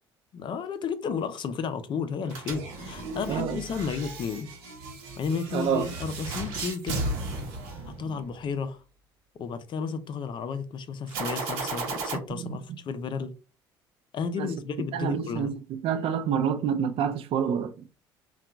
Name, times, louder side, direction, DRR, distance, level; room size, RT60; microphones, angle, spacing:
voice 1, 0.3-4.5 5.2-7.1 7.9-8.8 9.3-13.3 14.1-15.6, left 6 dB, 45° left, 0.4 m, -33 dB
sound 1, 2.3-8.4 11.1-12.2, right 3 dB, 75° right, 0.8 m, -35 dB
voice 2, 3.3-3.6 5.5-5.9 12.3-12.6 14.4-14.5 14.9-17.9, right 8 dB, 55° right, 0.4 m, -28 dB
2.7 x 2.3 x 2.3 m
hypercardioid pair, 60°, 11 cm